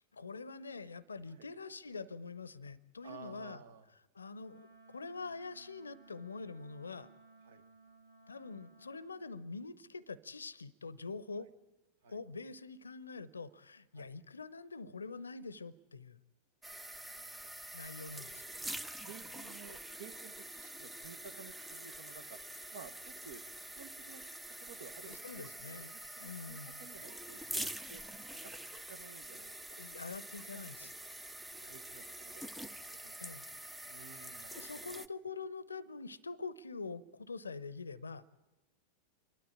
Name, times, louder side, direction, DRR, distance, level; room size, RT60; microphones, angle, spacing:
voice 1, 0.0-3.6 4.1-4.7 4.9-7.1 8.3-11.5 12.1-16.2 17.7-18.4 25.1-25.9 26.2-26.8 29.8-30.9 33.2-33.5 34.5-38.2, left 4 dB, 75° left, 21 dB, 0.7 m, -45 dB
voice 2, 3.0-3.9 5.2-5.3 7.4-7.6 11.4-11.5 12.0-12.2 13.9-14.1 16.9-17.6 18.5-18.6 19.1-22.4 22.7-24.2 24.6-28.0 28.3-29.8 30.5-31.0 31.6-33.4 33.9-35.0, right 7 dB, 60° right, 12 dB, 1.2 m, -55 dB
Wind instrument woodwind instrument, 4.3-9.2, right 3 dB, 80° right, 2.0 m, -60 dB
sound 1, 16.6-35.1, right 1 dB, 5° right, 0.7 m, -46 dB
28.0 x 12.5 x 8.7 m, 1.1 s
figure-of-eight pair, 90°, 0 cm